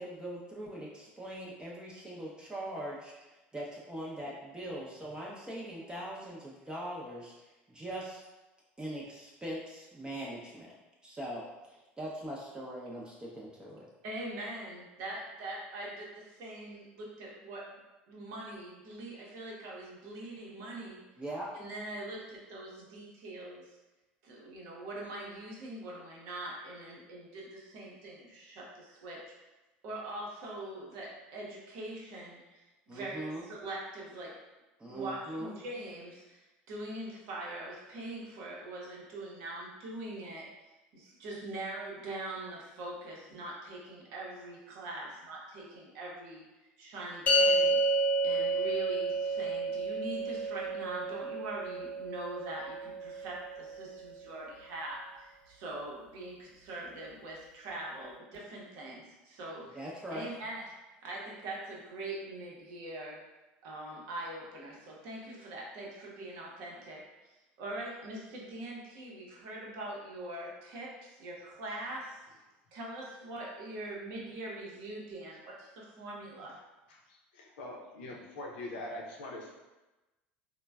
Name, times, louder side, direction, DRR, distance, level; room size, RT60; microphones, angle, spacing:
voice 1, 0.0-3.1 3.5-7.3 7.7-8.2 8.8-10.7 11.0-13.9 21.2-21.5 32.9-33.4 34.8-35.6 59.7-60.3, right 1 dB, 15° right, -5 dB, 0.5 m, -41 dB
voice 2, 14.0-17.6 18.1-21.0 21.6-23.6 24.2-29.2 29.8-34.4 34.8-40.5 40.9-46.4 46.8-47.8 48.2-59.8 60.1-60.6 61.0-63.2 63.6-72.2 72.7-76.6, right 1 dB, 70° right, -3 dB, 0.8 m, -42 dB
sound 1, 47.3-53.8, right 1 dB, 30° left, 0.6 m, -30 dB
voice 3, 76.9-79.5, left 1 dB, 80° left, -1 dB, 0.5 m, -43 dB
3.1 x 2.1 x 2.2 m, 1.1 s
hypercardioid pair, 80°, 6 cm